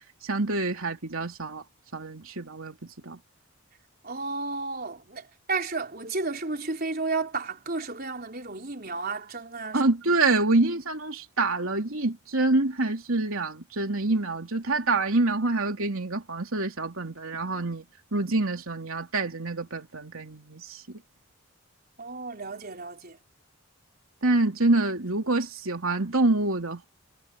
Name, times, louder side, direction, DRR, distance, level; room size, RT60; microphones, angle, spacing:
voice 1, 0.2-1.6 1.9-3.2 9.7-17.8 18.1-21.0 24.2-26.9, right 2 dB, 70° right, 3.2 m, -26 dB
voice 2, 4.0-9.8 22.0-23.2, right 3 dB, 45° right, 4.3 m, -32 dB
head